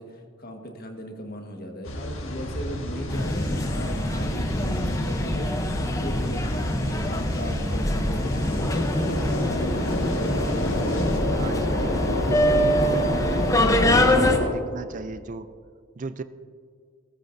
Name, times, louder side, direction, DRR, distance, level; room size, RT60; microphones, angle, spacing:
voice 1, 0.0-9.2, equal, 50° left, 3 dB, 1.5 m, -37 dB
sound 1, 1.8-14.5, left 1 dB, 70° left, 1.7 m, -29 dB
sound 2, 3.1-14.4, left 1 dB, 15° left, 0.7 m, -25 dB
voice 2, 11.3-11.9 12.3-15.5 16.0-16.2, right 3 dB, 40° right, 11 dB, 0.4 m, -35 dB
18.5 x 14.5 x 2.6 m, 2.1 s
head